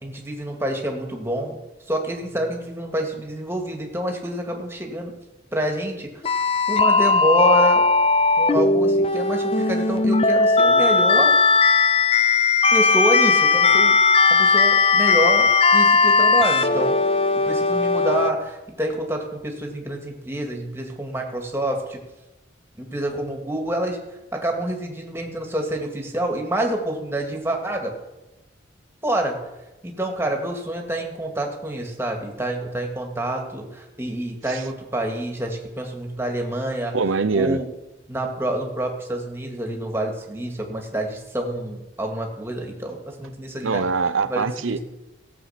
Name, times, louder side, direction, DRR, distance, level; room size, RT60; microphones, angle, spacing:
voice 1, 0.0-1.6 1.9-5.1 5.5-6.1 6.7-7.8 8.4-11.3 12.7-17.0 17.4-22.0 22.8-24.0 24.3-27.9 29.0-29.4 29.8-36.9 37.3-37.7 38.1-43.8 44.3-44.8, right 1 dB, 10° right, 2 dB, 2.0 m, -27 dB
sound 1, 6.2-18.3, left 4 dB, 30° left, 0.5 m, -18 dB
voice 2, 36.9-37.6 43.6-44.8, right 4 dB, 85° right, 13 dB, 0.7 m, -23 dB
17.0 x 7.7 x 5.9 m, 1.0 s
head